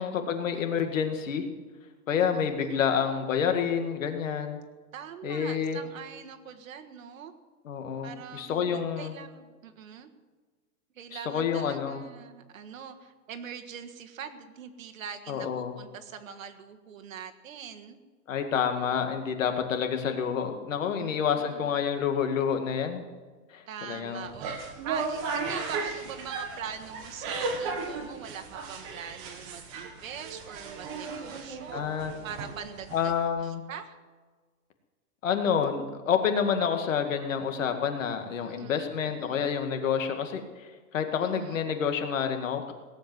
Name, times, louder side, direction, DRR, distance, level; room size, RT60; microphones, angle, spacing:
voice 1, 0.0-1.5 2.1-4.6 5.2-5.8 7.7-9.1 11.1-12.0 15.3-15.7 18.3-23.0 23.5-24.3 31.7-32.1 32.9-33.6 35.2-42.7, left 7 dB, 55° left, 6 dB, 2.1 m, -28 dB
voice 2, 2.3-3.1 4.9-7.3 8.0-10.1 10.9-18.0 21.0-21.7 23.7-24.5 24.8-31.9 32.2-33.1 33.4-34.0 38.4-38.9 39.2-39.5 41.2-41.6, right 8 dB, 60° right, 6 dB, 1.7 m, -43 dB
sound 1, 24.2-33.3, right 4 dB, 25° right, 1.4 m, -36 dB
18.0 x 8.1 x 9.3 m, 1.4 s
hypercardioid pair, 175°, 46 cm